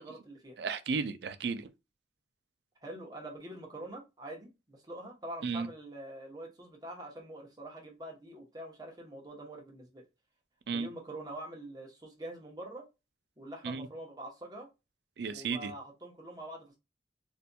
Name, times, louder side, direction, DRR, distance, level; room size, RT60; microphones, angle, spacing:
voice 1, 0.0-0.6 2.8-10.0 10.7-12.9 13.4-14.7 15.3-16.8, right 1 dB, 20° right, 0.9 m, -45 dB
voice 2, 0.6-1.7 5.4-5.7 10.7-10.9 13.6-13.9 15.2-15.7, right 5 dB, 70° right, 0.4 m, -34 dB
4.2 x 2.6 x 2.2 m
head